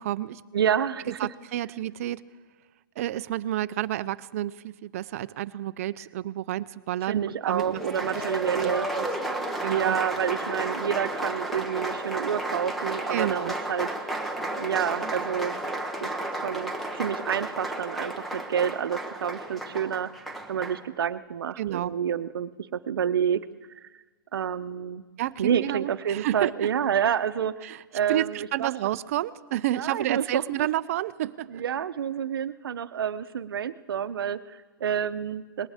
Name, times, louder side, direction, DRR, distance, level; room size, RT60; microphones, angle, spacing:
voice 1, 0.0-0.4 1.2-2.2 3.0-7.8 8.1-8.2 8.6-8.7 9.0-9.1 9.6-10.0 13.1-13.5 21.6-21.9 25.2-26.7 27.6-27.8 28.1-31.6, right 13 dB, 40° right, 15 dB, 0.4 m, -30 dB
voice 2, 0.5-1.2 7.1-8.9 9.7-13.9 14.6-15.6 16.0-16.1 16.4-20.1 20.5-23.4 24.3-25.0 25.4-28.7 29.8-30.7 31.5-35.7, right 8 dB, 80° right, 13 dB, 0.7 m, -28 dB
Applause, 7.6-20.8, right 1 dB, ahead, 0.7 m, -32 dB
19.5 x 18.5 x 3.5 m, 1.3 s
hypercardioid pair, 160°, 12 cm